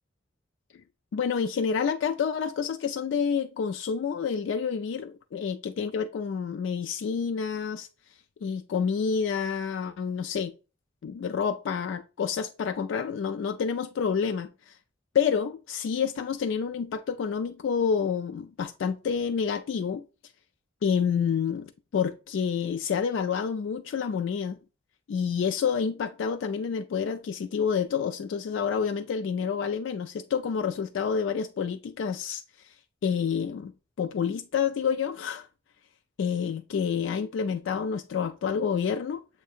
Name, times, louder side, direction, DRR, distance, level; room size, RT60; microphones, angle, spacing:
voice 1, 1.1-7.9 8.4-10.5 11.0-14.7 15.1-20.0 20.8-24.6 25.1-32.4 33.0-33.7 34.0-35.5 36.2-39.2, left 6 dB, 85° left, 0.3 m, -28 dB
7.0 x 2.7 x 2.4 m
head